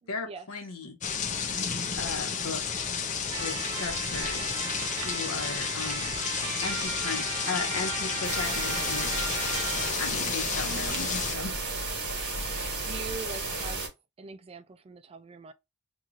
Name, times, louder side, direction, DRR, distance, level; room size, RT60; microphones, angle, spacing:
voice 1, 0.1-1.0 2.0-2.6 3.4-4.7 5.1-6.2 6.6-9.1 10.0-11.6, left 4 dB, 75° left, 0.9 m, -36 dB
sound 1, 1.0-11.4, left 6 dB, 35° left, 0.5 m, -32 dB
sound 2, 3.3-9.9, right 5 dB, 70° right, 1.0 m, -36 dB
voice 2, 5.7-6.5 12.8-13.8 14.2-15.5, right 4 dB, 25° right, 0.3 m, -43 dB
sound 3, 8.2-13.9, right 3 dB, 55° right, 1.3 m, -33 dB
3.0 x 2.4 x 3.8 m
head